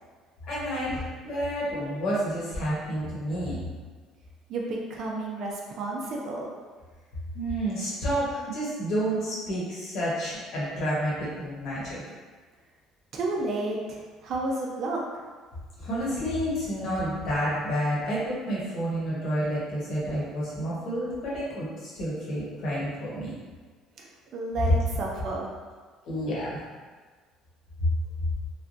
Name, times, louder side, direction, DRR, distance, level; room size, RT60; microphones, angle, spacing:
voice 1, 0.5-3.6 7.3-12.0 15.8-23.4 26.0-26.6, equal, 65° left, -7 dB, 1.2 m, -30 dB
voice 2, 4.5-6.5 13.1-15.0 24.0-25.5, right 2 dB, 55° right, -2 dB, 0.6 m, -31 dB
3.3 x 2.3 x 2.6 m, 1.4 s
cardioid pair, 115°, 0 cm